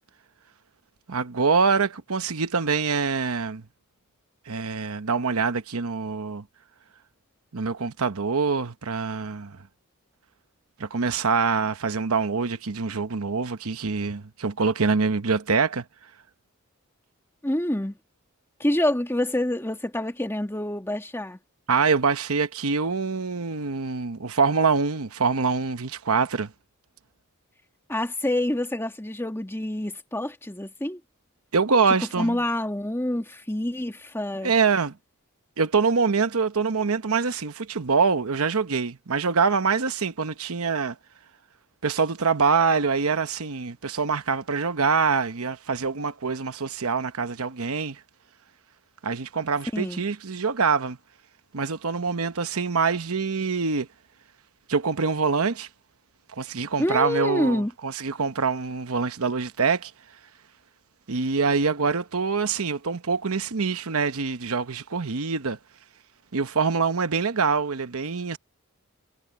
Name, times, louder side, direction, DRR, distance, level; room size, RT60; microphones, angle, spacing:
voice 1, 1.1-3.6 4.5-6.4 7.5-9.6 10.8-15.8 21.7-26.5 31.5-32.4 34.4-34.9 35.6-41.0 41.8-48.0 49.0-51.0 51.5-53.9 54.7-55.7 56.3-59.9 61.1-65.6 66.3-68.4, right 5 dB, 70° right, 1.0 m, -25 dB
voice 2, 17.4-18.0 18.6-21.4 27.9-31.0 32.2-34.5 49.7-50.0 56.8-57.7, left 1 dB, 10° left, 2.0 m, -27 dB
head